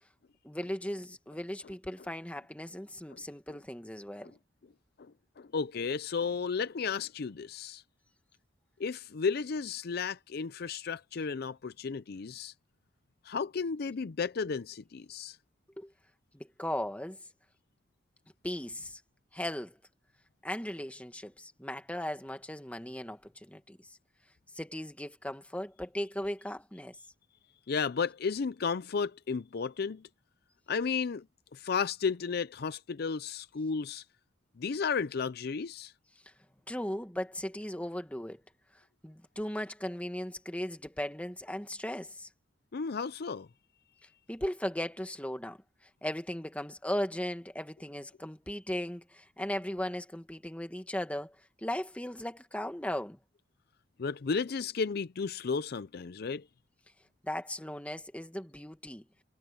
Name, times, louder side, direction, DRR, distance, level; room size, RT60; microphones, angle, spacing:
voice 1, 0.4-4.3 15.8-15.9 16.3-17.2 18.4-19.0 19.3-19.8 20.4-23.8 24.6-27.0 36.7-38.4 39.0-42.3 44.3-45.6 46.0-53.2 57.2-59.0, left 1 dB, 5° left, 2.0 m, -37 dB
voice 2, 5.4-7.8 8.8-12.5 13.2-15.4 27.7-30.0 30.7-31.2 31.5-34.0 34.6-35.9 42.7-43.5 54.0-56.4, left 5 dB, 55° left, 0.5 m, -33 dB
head